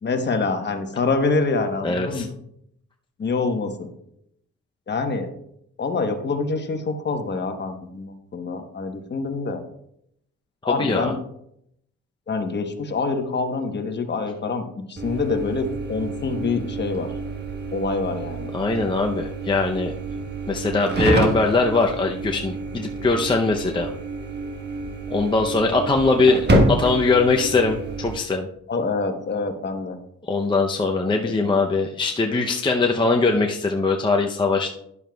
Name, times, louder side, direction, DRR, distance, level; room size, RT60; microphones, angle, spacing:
voice 1, 0.0-2.3 3.2-3.9 4.9-5.3 5.8-9.6 10.6-11.2 12.3-17.1 17.7-18.5 28.7-30.0 31.0-31.6, left 4 dB, 35° left, 6 dB, 1.1 m, -26 dB
voice 2, 1.8-2.2 10.6-11.1 18.5-19.9 20.5-23.9 25.1-28.5 30.3-34.7, left 3 dB, 15° left, 2 dB, 0.6 m, -21 dB
sound 1, 15.0-28.2, right 2 dB, 35° right, 1.4 m, -27 dB
11.0 x 7.0 x 2.3 m, 0.75 s
cardioid pair, 90°, 30 cm